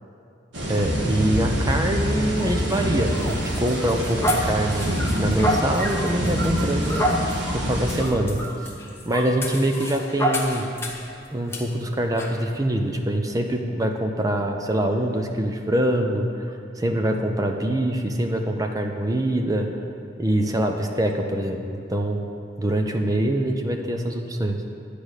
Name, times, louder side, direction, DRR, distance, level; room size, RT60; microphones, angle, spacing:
sound 1, 0.5-8.0, equal, 75° right, 2.0 m, -26 dB
voice 1, 0.7-4.9 5.2-7.2 7.5-8.4 9.1-10.6 11.3-19.7 20.2-22.3 22.6-24.6, right 1 dB, 20° right, 4 dB, 0.6 m, -24 dB
sound 2, 2.4-11.1 11.5-11.6 12.2-12.4, equal, 15° left, 1.0 m, -29 dB
11.0 x 5.0 x 8.2 m, 2.6 s
head